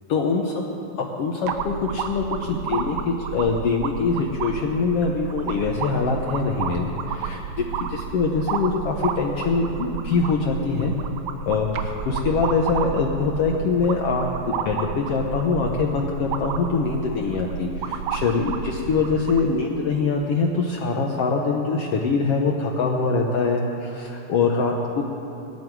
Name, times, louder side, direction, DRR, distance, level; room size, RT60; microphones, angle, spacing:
voice 1, 0.1-0.6 1.0-10.9 11.5-25.0, left 4 dB, 65° left, 0 dB, 1.7 m, -24 dB
sound 1, 1.5-19.5, right 8 dB, 80° right, 2.1 m, -31 dB
18.0 x 12.0 x 4.6 m, 2.9 s
omnidirectional pair, 3.4 m